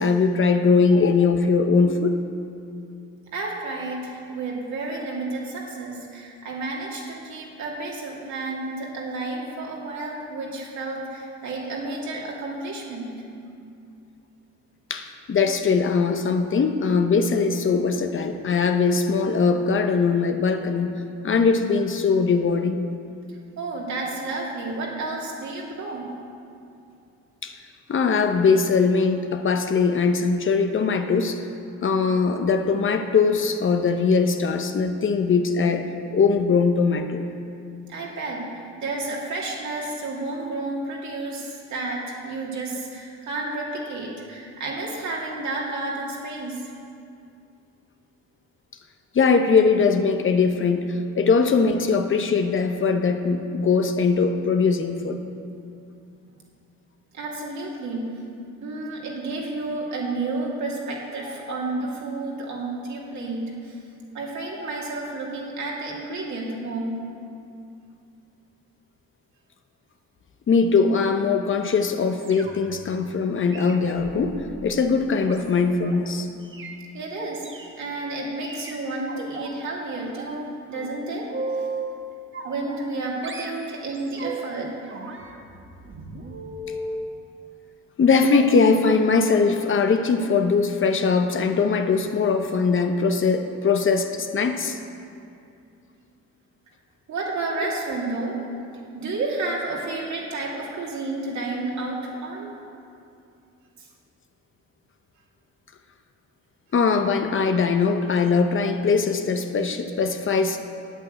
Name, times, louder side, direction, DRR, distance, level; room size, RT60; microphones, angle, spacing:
voice 1, 0.0-2.2 14.9-20.9 21.2-22.9 27.4-27.5 27.9-31.4 31.8-35.8 36.1-37.2 49.1-50.9 51.2-55.2 70.5-76.3 88.0-94.8 106.7-110.6, left 5 dB, 40° left, 6 dB, 0.9 m, -21 dB
voice 2, 3.3-13.1 23.6-26.1 37.9-46.6 57.1-58.1 58.6-63.8 64.1-66.9 76.9-81.7 82.4-84.7 86.7-86.9 97.1-98.4 98.9-102.5 103.8-103.9, right 2 dB, 65° right, -3 dB, 2.7 m, -31 dB
sound 1, 72.2-72.8 73.5-76.0 76.4-76.8 77.4-77.7 78.4-79.5 79.9-80.4 80.7-81.9 82.3-83.0 83.2-84.5 84.9-86.9 88.1-88.6 89.2-89.4 89.7-89.9 90.2-90.4 90.7-90.8, right 3 dB, 40° right, 1.4 m, -36 dB
8.9 x 8.9 x 8.0 m, 2.5 s
cardioid pair, 90°, 30 cm